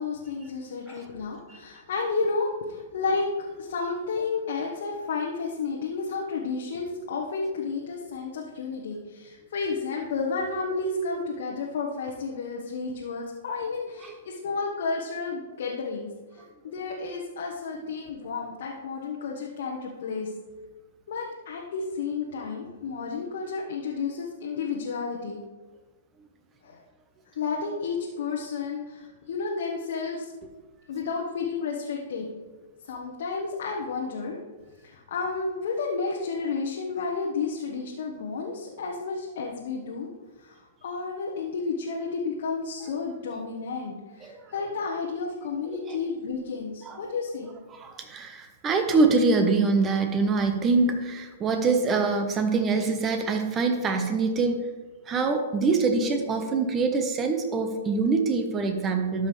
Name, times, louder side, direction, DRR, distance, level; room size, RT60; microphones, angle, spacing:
voice 1, 0.0-20.3 21.1-25.4 26.6-26.8 27.3-30.3 30.9-32.3 32.9-34.4 34.8-40.1 40.4-47.5, left 4 dB, 65° left, -2 dB, 1.2 m, -31 dB
voice 2, 47.8-54.6 55.1-59.3, right 4 dB, 25° right, 6 dB, 1.1 m, -24 dB
13.0 x 5.5 x 3.3 m, 1.3 s
hypercardioid pair, 115°, 0 cm